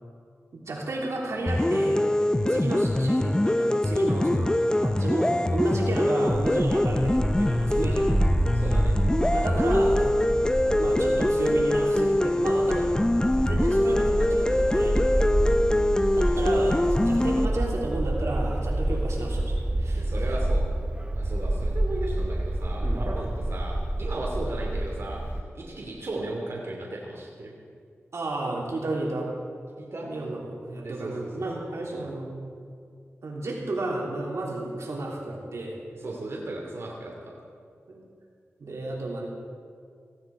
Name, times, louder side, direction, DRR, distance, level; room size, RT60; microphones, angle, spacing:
voice 1, 0.5-2.0 2.5-4.6 4.8-8.1 9.3-10.3 10.8-15.5 16.1-20.4 22.8-23.0 28.1-29.3 30.0-32.3 33.2-35.8 37.9-38.1 38.6-39.3, right 2 dB, 80° right, -2 dB, 3.3 m, -32 dB
sound 1, 1.5-17.5, left 1 dB, 15° left, 0.5 m, -23 dB
Bark, 6.3-25.4, right 1 dB, 20° right, 0.8 m, -28 dB
voice 2, 8.5-9.0 19.9-20.6 21.2-25.2 25.5-27.5 29.8-30.1 30.8-31.1 36.0-37.3, right 2 dB, 60° right, -2 dB, 2.8 m, -36 dB
18.0 x 16.0 x 4.9 m, 2.2 s
wide cardioid pair, 70°, 5 cm